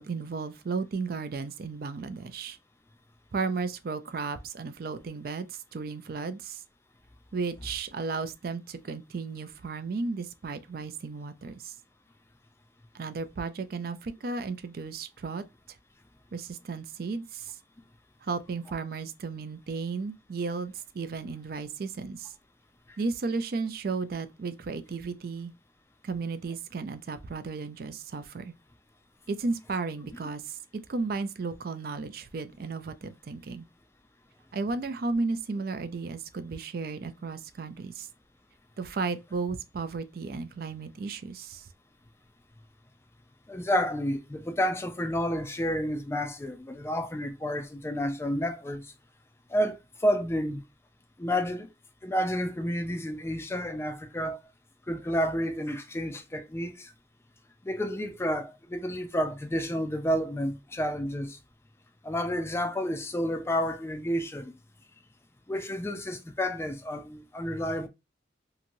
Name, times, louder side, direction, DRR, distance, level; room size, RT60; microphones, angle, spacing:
voice 1, 0.0-2.6 3.3-6.6 7.3-11.7 12.9-15.4 16.3-17.6 18.2-22.3 23.0-25.5 26.0-28.5 29.3-33.7 34.5-38.1 38.8-41.7, right 4 dB, 55° right, 0.4 m, -34 dB
voice 2, 43.5-48.9 49.5-50.6 51.2-51.7 52.0-54.4 54.9-56.9 57.6-61.4 62.0-64.6 65.5-67.9, equal, 15° left, 0.4 m, -30 dB
2.9 x 2.7 x 2.5 m
head